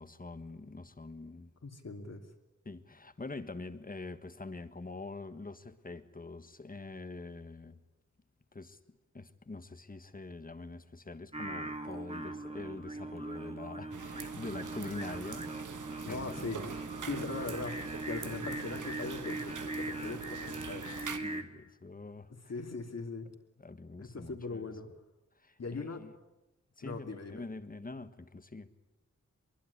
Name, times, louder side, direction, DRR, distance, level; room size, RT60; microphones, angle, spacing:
voice 1, 0.0-1.5 2.6-7.8 8.5-8.8 9.1-15.6 16.1-16.4 20.9-22.3 23.6-24.7 25.4-26.1 26.8-28.7, left 3 dB, 30° left, 1.5 m, -45 dB
voice 2, 1.6-2.3 16.0-16.6 17.0-20.9 22.3-23.3 24.0-24.9 25.6-26.0 26.8-27.5, left 3 dB, 55° left, 3.1 m, -40 dB
Singing, 11.3-21.4, right 2 dB, 20° right, 1.9 m, -40 dB
sound 1, 13.9-21.2, right 6 dB, 85° right, 1.8 m, -44 dB
24.5 x 23.0 x 9.9 m
wide cardioid pair, 130°, 30 cm